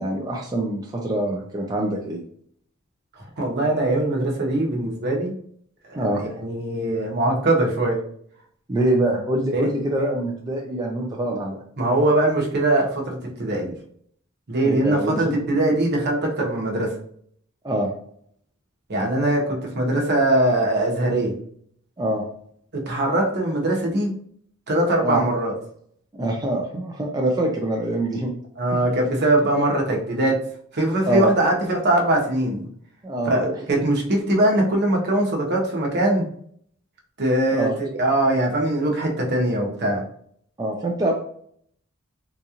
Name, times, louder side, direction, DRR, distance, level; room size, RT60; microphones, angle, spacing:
voice 1, 0.0-2.2 6.0-6.2 8.7-11.6 14.6-15.3 17.6-17.9 22.0-22.2 25.0-25.2 26.2-28.3 28.7-28.8 31.1-31.3 33.0-33.4 33.7-33.8 37.5-37.7 40.6-41.2, right 1 dB, 20° right, -1 dB, 0.4 m, -24 dB
voice 2, 3.4-5.3 5.8-8.0 9.5-9.7 11.8-13.7 14.5-16.9 18.9-21.3 22.7-24.1 24.7-25.5 28.6-30.4 30.7-32.7 33.3-36.2 37.2-40.0, right 1 dB, 50° right, 0 dB, 0.9 m, -21 dB
3.9 x 2.4 x 2.8 m, 0.63 s
head